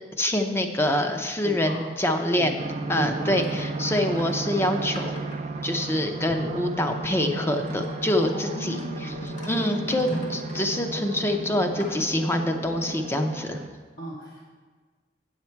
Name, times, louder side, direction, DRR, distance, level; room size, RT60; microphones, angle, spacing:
voice 1, 0.2-2.6 2.9-5.2 5.6-9.1 9.5-13.6, left 1 dB, 15° left, 5 dB, 0.6 m, -25 dB
voice 2, 1.4-1.8 2.3-2.6 2.9-3.4 8.2-9.8 14.0-14.5, equal, 65° left, -5 dB, 1.1 m, -38 dB
sound 1, 2.6-13.7, right 3 dB, 40° right, 0.4 m, -35 dB
sound 2, 3.2-6.3 7.2-10.8 11.4-12.2, equal, 45° left, 1.2 m, -41 dB
sound 3, 6.3-13.5, left 1 dB, 80° left, 0.6 m, -38 dB
8.5 x 7.2 x 4.5 m, 1.5 s
head